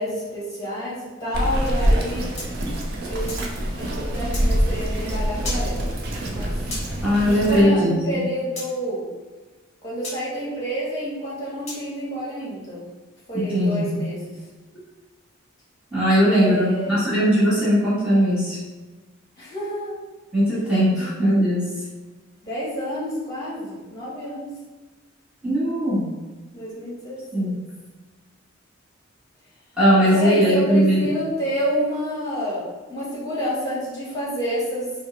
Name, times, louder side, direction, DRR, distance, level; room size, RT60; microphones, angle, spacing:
voice 1, 0.0-2.3 3.1-3.3 3.8-6.0 6.2-6.6 7.2-9.1 9.8-12.9 13.3-14.4 16.3-17.1 19.4-19.9 20.9-21.1 22.4-24.5 26.5-27.2 30.0-34.9, equal, 20° left, -9 dB, 1.4 m, -29 dB
Bird vocalization bird call bird song, 1.3-7.6, equal, 50° right, 0.5 m, -25 dB
sound 1, 2.4-3.5 4.3-4.5 5.4-5.7 6.7-6.9 8.6-8.7 10.0-10.2 11.7-11.9, left 2 dB, 35° left, 1.2 m, -33 dB
voice 2, 7.0-8.2 13.5-14.0 15.9-18.6 20.3-21.6 25.4-26.1 27.3-27.6 29.8-31.1, equal, 5° right, -12 dB, 1.1 m, -19 dB
4.9 x 2.0 x 3.1 m, 1.2 s
head